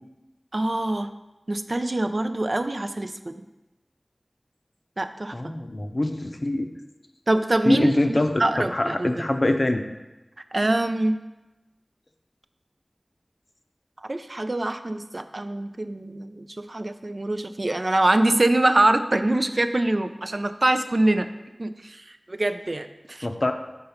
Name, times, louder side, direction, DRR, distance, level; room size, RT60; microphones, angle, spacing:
voice 1, 0.5-1.1 1.5-3.3 5.0-5.5 7.3-9.2 10.5-11.2 14.1-21.3 21.6-22.0 22.3-23.3, right 1 dB, 60° right, 9 dB, 0.3 m, -24 dB
voice 2, 5.3-6.7 7.6-9.8 23.2-23.5, left 1 dB, 55° left, 6 dB, 0.5 m, -24 dB
5.5 x 3.8 x 5.7 m, 1.0 s
wide cardioid pair, 45°, 0 cm